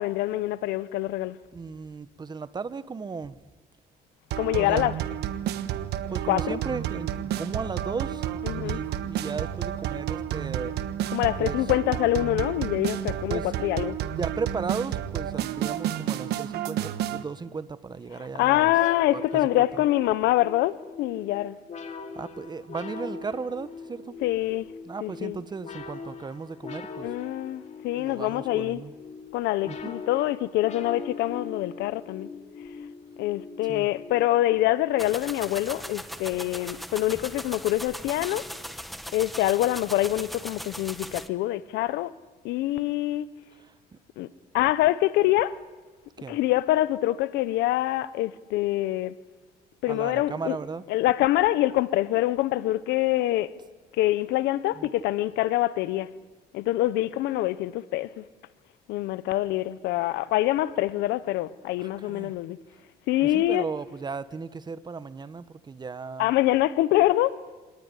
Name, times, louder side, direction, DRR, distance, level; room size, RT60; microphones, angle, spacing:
voice 1, 0.0-1.4 4.4-4.9 6.3-6.6 8.4-8.8 11.1-14.0 18.4-21.6 24.2-24.7 25.0-25.4 27.0-28.8 29.3-32.3 33.2-38.4 39.1-42.1 42.4-43.3 44.2-44.3 44.5-45.6 46.3-49.1 49.8-50.5 50.9-53.5 54.0-56.1 56.5-58.2 58.9-62.6 63.1-63.6 66.2-67.4, left 15 dB, 85° left, 0.9 m, -25 dB
voice 2, 1.5-3.4 4.5-4.9 6.1-10.8 11.4-11.6 13.3-13.5 14.1-18.7 19.1-19.4 22.1-24.2 24.8-27.2 28.0-28.9 29.7-29.9 33.7-33.9 43.5-44.0 46.2-46.4 49.9-50.8 54.7-54.9 61.8-62.3 63.2-66.3, right 5 dB, 25° right, 1.1 m, -35 dB
sound 1, 4.3-17.2, right 11 dB, 75° right, 1.3 m, -31 dB
sound 2, 18.7-35.0, left 5 dB, 45° left, 2.7 m, -41 dB
sound 3, 35.0-41.3, equal, ahead, 1.3 m, -39 dB
26.0 x 19.0 x 9.8 m
cardioid pair, 110°, 17 cm